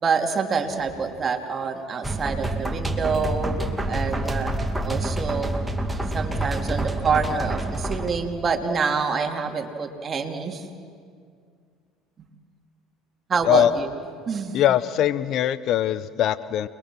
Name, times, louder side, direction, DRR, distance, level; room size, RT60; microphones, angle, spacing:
voice 1, 0.0-5.5 6.1-10.7 13.3-13.9 14.3-14.6, right 5 dB, 35° right, 4 dB, 2.8 m, -26 dB
sound 1, 2.0-8.1, right 1 dB, 10° right, 2.3 m, -27 dB
voice 2, 14.5-16.7, left 11 dB, 60° left, 17 dB, 0.7 m, -21 dB
30.0 x 22.0 x 6.2 m, 2.1 s
hypercardioid pair, 75°, 0 cm